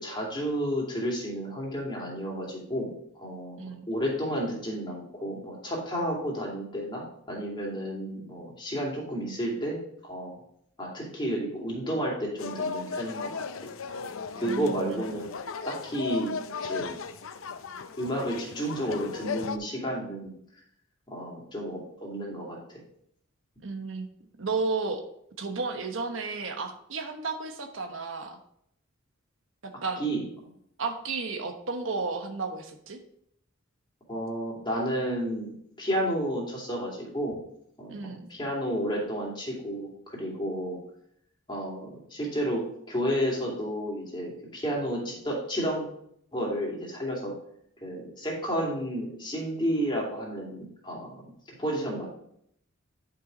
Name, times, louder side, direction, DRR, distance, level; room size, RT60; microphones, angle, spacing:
voice 1, 0.0-2.9 3.1-9.8 10.0-10.4 10.8-14.0 14.4-15.3 15.6-16.3 16.6-16.9 18.0-20.3 21.1-22.8 30.0-30.5 34.1-35.5 35.8-37.4 37.8-40.8 41.5-42.6 42.9-45.9 46.3-47.3 47.8-51.1 51.6-52.1, equal, 25° left, -3 dB, 2.7 m, -31 dB
sound 1, 12.4-19.6, left 5 dB, 85° left, 0.6 m, -36 dB
voice 2, 14.4-15.0 23.6-24.1 24.4-25.0 25.4-28.4 29.8-30.0 30.8-33.0 37.9-38.3, right 4 dB, 70° right, 5 dB, 1.1 m, -33 dB
10.5 x 6.0 x 3.9 m, 0.70 s
head